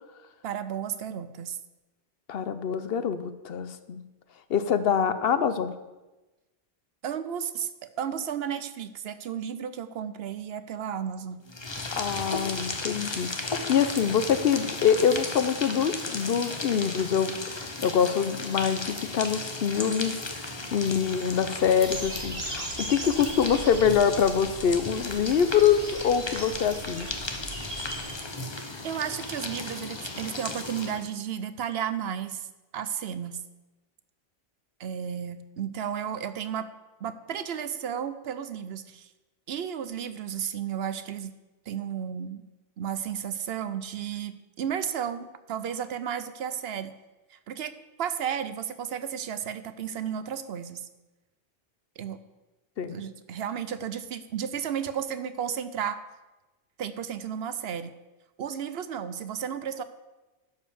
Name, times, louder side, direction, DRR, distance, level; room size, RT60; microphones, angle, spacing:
voice 1, 0.4-1.6 7.0-11.4 28.8-32.5 32.7-33.4 34.8-36.7 37.0-39.1 39.5-41.3 41.7-42.4 42.8-46.9 47.3-47.7 48.0-50.9 52.0-52.2 52.8-56.0 56.8-57.9 58.4-59.8, right 8 dB, 75° right, 12 dB, 0.9 m, -33 dB
voice 2, 2.3-4.0 4.5-5.7 12.0-20.2 20.7-27.1 52.8-53.0, left 7 dB, 70° left, 12 dB, 0.9 m, -25 dB
sound 1, 11.5-31.1, left 2 dB, 30° left, 0.9 m, -35 dB
sound 2, 21.8-28.1, right 2 dB, 40° right, 1.5 m, -39 dB
11.5 x 5.2 x 7.0 m, 1.1 s
omnidirectional pair, 1.0 m